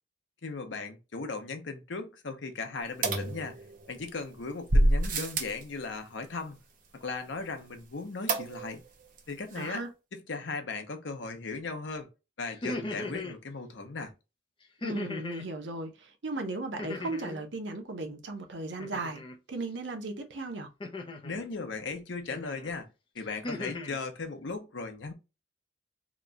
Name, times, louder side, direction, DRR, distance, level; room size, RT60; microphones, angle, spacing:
voice 1, 0.4-6.6 6.9-8.8 9.3-9.8 10.1-12.1 12.4-14.1 21.2-22.9 23.1-25.1, left 4 dB, 80° left, 0.8 m, -37 dB
sound 1, 3.0-4.0 4.7-5.6 8.3-8.9 9.2-9.3 9.5-9.6, right 1 dB, 45° right, 0.7 m, -27 dB
voice 2, 9.6-9.9 14.8-19.2 19.5-20.7, right 2 dB, 75° right, 0.8 m, -36 dB
sound 2, 12.5-13.4 14.8-15.5 16.8-17.5 18.8-19.4 20.8-21.5 22.3-22.7 23.2-24.0, left 2 dB, 25° left, 0.6 m, -38 dB
3.0 x 2.3 x 3.8 m
head